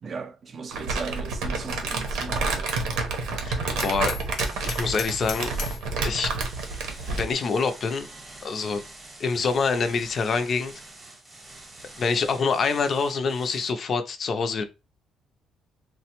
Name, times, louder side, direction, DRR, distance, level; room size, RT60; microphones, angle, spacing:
voice 1, 0.0-3.0 3.7-4.0, right 5 dB, 35° right, 0.4 m, -38 dB
Crumpling crinkling, 0.7-7.3, right 3 dB, 90° right, 0.7 m, -29 dB
voice 2, 3.4-4.2 4.6-5.5 6.0-6.3 7.1-8.1 8.4-8.8 9.2-10.7 12.0-14.6, left 5 dB, 40° left, 0.4 m, -26 dB
Hammer, 3.8-5.9, left 6 dB, 70° left, 0.7 m, -37 dB
sound 1, 4.4-5.8 6.4-13.7, right 2 dB, 20° right, 0.9 m, -45 dB
3.2 x 2.1 x 2.8 m
cardioid pair, 150°, 0 cm